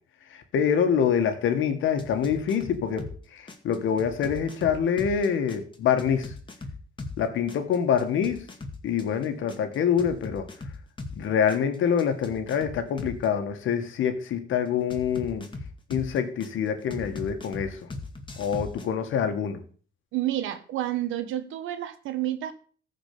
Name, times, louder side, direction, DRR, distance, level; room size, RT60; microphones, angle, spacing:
voice 1, 0.3-6.3 7.2-8.5 8.8-10.5 11.1-15.5 15.9-17.9 18.4-19.6, left 7 dB, 80° left, 7 dB, 1.9 m, -26 dB
sound 1, 2.0-3.2 3.5-7.2 7.5-11.2 11.5-13.3 14.9-16.5 16.9-18.9, left 3 dB, 25° left, 2.2 m, -38 dB
voice 2, 20.1-22.5, right 13 dB, 90° right, 10 dB, 1.3 m, -29 dB
14.5 x 5.1 x 6.9 m, 0.43 s
cardioid pair, 90°, 20 cm